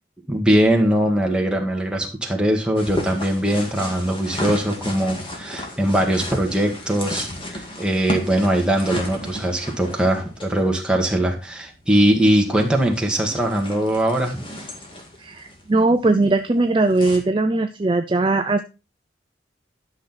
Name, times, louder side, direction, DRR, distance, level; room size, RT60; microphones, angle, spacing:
voice 1, 0.3-14.4, right 1 dB, 5° right, 0 dB, 1.8 m, -21 dB
sound 1, 2.8-17.2, left 1 dB, 25° left, 2.0 m, -34 dB
voice 2, 15.2-18.6, right 2 dB, 25° right, 7 dB, 0.5 m, -19 dB
11.5 x 6.3 x 4.1 m, 0.31 s
head